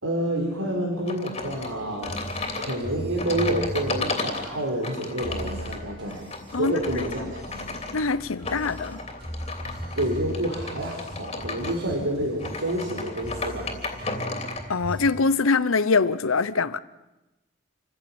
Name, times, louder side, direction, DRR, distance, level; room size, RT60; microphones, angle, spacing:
voice 1, 0.0-2.2 2.6-7.7 10.0-13.7, right 1 dB, 90° right, 4.5 m, -28 dB
sound 1, 1.1-14.7, left 3 dB, 30° left, 3.0 m, -34 dB
sound 2, 1.4-15.1, equal, 25° right, 5.1 m, -38 dB
voice 2, 7.9-9.0 14.7-16.8, left 4 dB, 80° left, 0.9 m, -23 dB
28.0 x 15.5 x 8.9 m
head